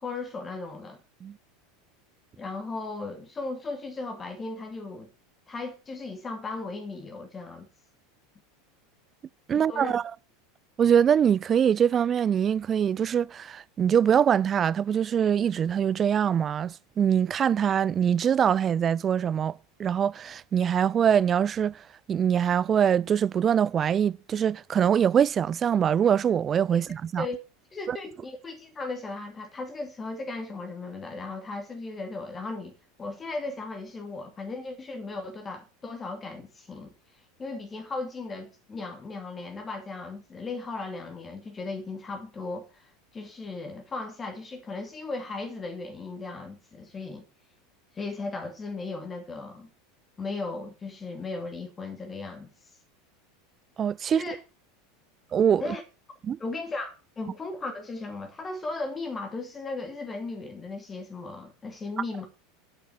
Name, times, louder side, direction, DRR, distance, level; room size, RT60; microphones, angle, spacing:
voice 1, 0.0-1.0 2.4-5.1 5.5-7.7 9.5-10.0 26.7-26.8 27.2-27.4 27.7-32.7 33.0-36.9 37.4-47.2 47.9-49.7 50.2-52.5 54.1-54.4 55.6-55.8 56.4-62.3, left 3 dB, 20° left, 2.7 m, -36 dB
voice 2, 9.5-10.0 10.8-21.8 22.1-27.3 27.9-28.0 53.8-54.2 55.3-55.7 56.2-56.4, right 8 dB, 30° right, 0.5 m, -23 dB
8.9 x 8.3 x 7.7 m
figure-of-eight pair, 80°, 0 cm